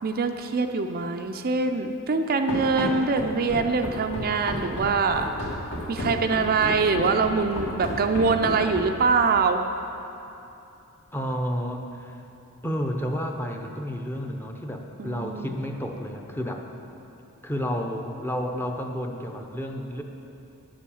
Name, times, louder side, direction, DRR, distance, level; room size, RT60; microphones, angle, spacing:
voice 1, 0.0-5.3 5.9-9.6 15.0-15.6, right 4 dB, 45° right, 6 dB, 0.4 m, -24 dB
Run, 2.5-9.1, left 1 dB, 55° left, 2.1 m, -32 dB
voice 2, 11.1-12.2 12.6-16.6 17.4-20.0, equal, 10° left, 2 dB, 0.7 m, -31 dB
9.5 x 7.4 x 7.1 m, 2.8 s
head